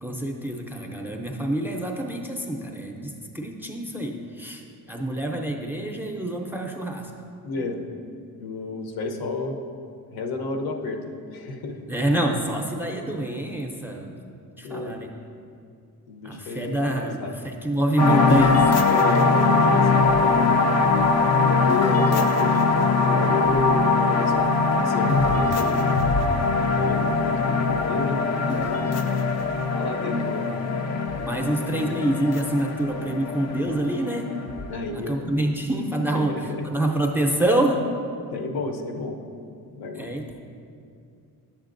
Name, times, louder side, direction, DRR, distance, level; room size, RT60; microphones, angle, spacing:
voice 1, 0.0-7.1 11.9-14.2 14.6-15.1 16.2-18.7 31.2-34.3 34.9-37.8 39.9-40.4, right 1 dB, 5° right, 2 dB, 0.5 m, -26 dB
voice 2, 7.4-7.8 8.4-9.6 10.1-11.8 14.6-15.0 16.1-17.3 18.9-20.6 21.3-24.5 24.7-25.8 26.7-28.9 29.7-30.5 34.7-35.1 36.1-36.6 38.3-39.2 39.7-40.1, left 3 dB, 70° left, 3 dB, 0.9 m, -31 dB
sound 1, 18.0-34.9, left 4 dB, 45° left, 0.5 m, -21 dB
9.8 x 7.2 x 2.5 m, 2.4 s
cardioid pair, 105°, 38 cm